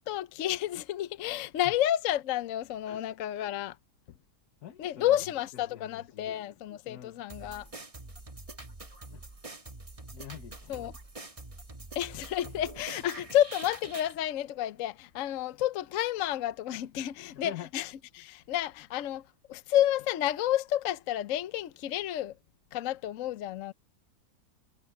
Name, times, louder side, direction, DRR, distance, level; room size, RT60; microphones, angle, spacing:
voice 1, 0.1-3.8 4.8-7.7 10.7-10.9 11.9-22.3 22.7-23.7, left 12 dB, 65° left, 1.0 m, -30 dB
voice 2, 4.6-5.2 5.7-6.4 6.9-7.2 9.1-9.3 10.1-10.8 17.3-17.7, left 11 dB, 80° left, 1.5 m, -46 dB
sound 1, 7.3-14.1, right 2 dB, 25° right, 1.4 m, -45 dB
omnidirectional pair, 1.7 m